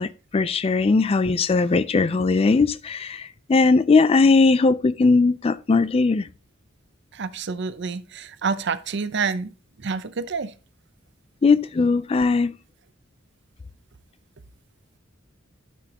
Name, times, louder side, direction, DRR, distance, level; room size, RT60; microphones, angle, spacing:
voice 1, 0.0-6.3 11.4-12.5, left 4 dB, 30° left, 0.3 m, -19 dB
voice 2, 7.1-9.5 9.8-10.5, right 5 dB, 60° right, 0.6 m, -28 dB
12.5 x 6.0 x 2.8 m
head